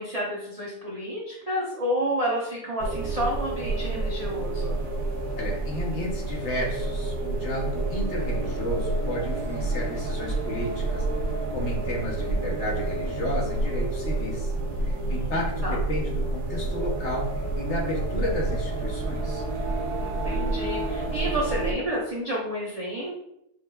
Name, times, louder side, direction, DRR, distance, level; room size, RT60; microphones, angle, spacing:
voice 1, 0.0-4.8 15.0-15.3 15.6-15.8 20.0-23.2, equal, 45° right, -6 dB, 0.4 m, -30 dB
sound 1, 2.8-21.7, right 2 dB, 85° right, 1.3 m, -29 dB
voice 2, 5.4-14.5 14.8-17.3 17.6-19.4, left 1 dB, 55° left, -2 dB, 1.0 m, -32 dB
6.2 x 2.4 x 2.2 m, 0.80 s
omnidirectional pair, 1.6 m